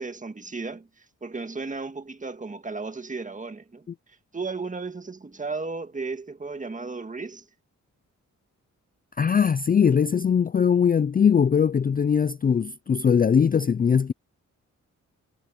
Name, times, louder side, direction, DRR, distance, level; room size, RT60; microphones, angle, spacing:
voice 1, 0.0-3.9 4.3-7.5, right 4 dB, 25° right, 1.7 m, -34 dB
voice 2, 9.2-14.1, left 7 dB, 30° left, 0.4 m, -21 dB
wide cardioid pair, 110°, 31 cm